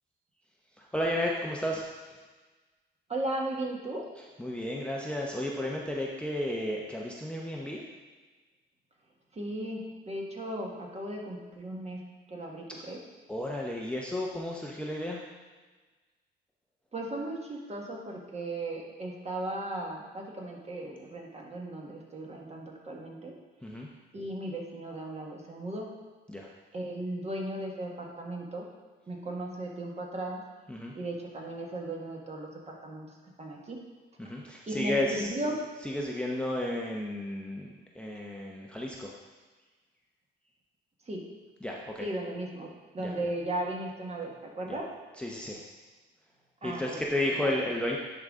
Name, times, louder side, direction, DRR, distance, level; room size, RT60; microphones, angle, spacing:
voice 1, 0.7-2.2 4.2-7.8 13.3-15.2 23.6-23.9 26.3-26.5 30.7-30.9 34.2-35.3 35.8-39.1 41.6-42.1 43.0-43.3 44.7-44.8 45.1-45.6 46.6-48.0, left 1 dB, 5° left, -2 dB, 0.7 m, -33 dB
voice 2, 3.1-4.0 9.3-13.0 16.9-23.3 24.1-25.9 26.7-28.7 29.1-30.4 30.9-33.1 33.4-33.8 34.7-35.6 41.1-41.2 42.0-44.9 46.6-46.8 47.4-47.5, right 1 dB, 35° right, -1 dB, 1.5 m, -36 dB
10.0 x 3.9 x 3.7 m, 1.3 s
cardioid pair, 90°, 20 cm